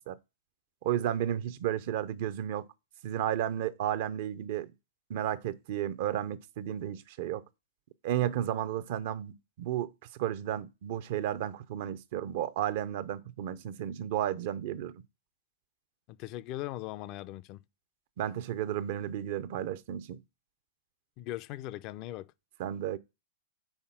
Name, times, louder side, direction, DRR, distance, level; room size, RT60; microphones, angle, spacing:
voice 1, 0.8-2.7 3.0-4.7 5.1-7.4 8.0-9.9 10.2-15.0 18.2-20.2 22.6-23.0, right 11 dB, 55° right, 0.6 m, -33 dB
voice 2, 16.1-17.6 21.2-22.3, left 15 dB, 40° left, 0.4 m, -39 dB
5.7 x 4.2 x 5.6 m
hypercardioid pair, 125°, 0 cm